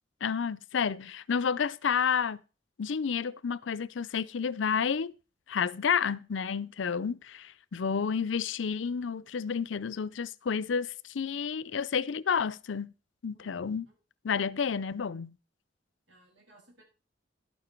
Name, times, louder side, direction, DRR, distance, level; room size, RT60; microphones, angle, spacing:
voice 1, 0.2-2.4 2.8-5.1 5.5-12.9 13.2-13.8 14.2-15.3, left 6 dB, 80° left, 0.5 m, -30 dB
voice 2, 13.3-14.0 16.1-16.8, right 2 dB, 90° right, 6.6 m, -60 dB
12.0 x 9.0 x 4.5 m
head